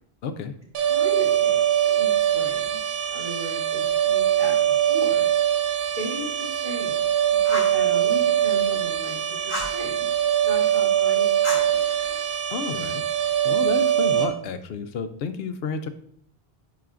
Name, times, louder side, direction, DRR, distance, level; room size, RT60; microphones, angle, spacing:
voice 1, 0.2-0.5 12.5-13.1 13.4-15.9, left 5 dB, 75° left, 9 dB, 0.8 m, -30 dB
sound 1, 0.7-14.3, right 10 dB, 55° right, 1.0 m, -22 dB
voice 2, 0.9-2.8 3.1-5.2 6.0-7.0 7.5-10.1 10.4-11.7, right 1 dB, 35° right, -6 dB, 2.3 m, -36 dB
Fire, 7.4-7.8 9.5-9.8 11.4-12.4, equal, 40° left, 3.1 m, -32 dB
10.5 x 4.1 x 2.5 m, 0.66 s
omnidirectional pair, 1.0 m